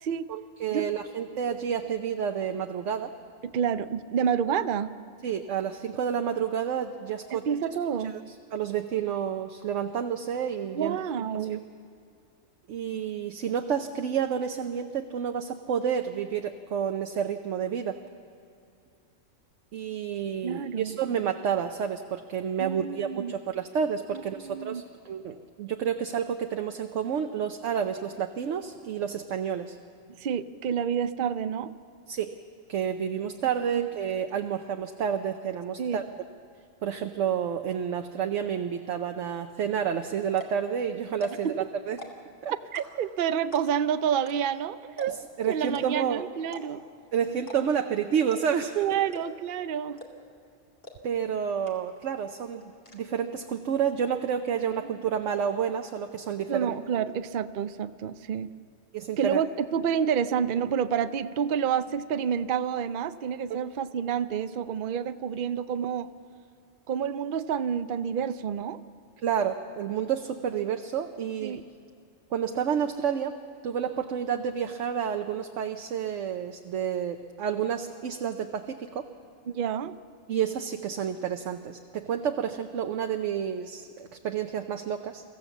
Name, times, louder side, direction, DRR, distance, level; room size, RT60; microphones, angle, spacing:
voice 1, 0.3-3.1 5.2-7.5 8.0-8.1 8.5-11.0 11.5-11.6 12.7-17.9 19.7-29.8 32.1-32.4 32.7-36.0 36.8-42.0 42.4-42.5 45.1-46.2 47.1-48.8 51.0-56.7 58.9-59.4 63.5-63.6 69.2-71.6 72.3-73.4 73.6-79.0 80.3-85.2, right 8 dB, 70° right, 5 dB, 1.1 m, -30 dB
voice 2, 3.4-4.9 7.3-8.2 10.7-11.6 20.4-21.0 22.6-23.4 24.1-24.8 30.2-31.7 33.7-33.9 35.8-36.0 41.4-41.5 42.7-45.2 45.5-46.8 48.8-50.0 56.5-58.5 59.2-66.1 66.9-68.8 71.4-71.6 79.5-79.9, right 8 dB, 50° right, 12 dB, 0.7 m, -29 dB
sound 1, 40.4-40.6 41.1-41.5 41.9-42.3 42.7-43.1 43.5-43.9 44.3-44.4 44.6-44.7 45.0-45.3 45.7-45.9 46.5-46.9 47.4-47.9 48.3-48.6 49.1-49.5 50.0-50.3 50.8-50.9 51.3-51.4 51.7-52.1 52.4-53.0, left 2 dB, 40° left, 2.5 m, -43 dB
24.0 x 15.0 x 7.2 m, 2.5 s
omnidirectional pair, 1.4 m